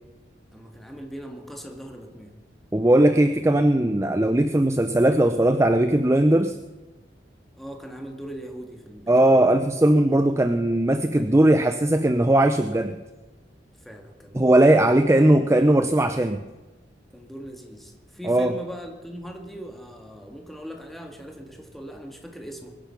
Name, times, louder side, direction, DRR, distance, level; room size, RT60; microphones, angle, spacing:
voice 1, 0.5-2.4 7.6-9.5 13.8-14.9 17.1-22.7, equal, ahead, 2 dB, 1.9 m, -40 dB
voice 2, 2.7-6.6 9.1-13.0 14.3-16.4 18.2-18.5, right 1 dB, 15° right, 8 dB, 0.5 m, -19 dB
22.5 x 10.5 x 5.8 m, 1.2 s
head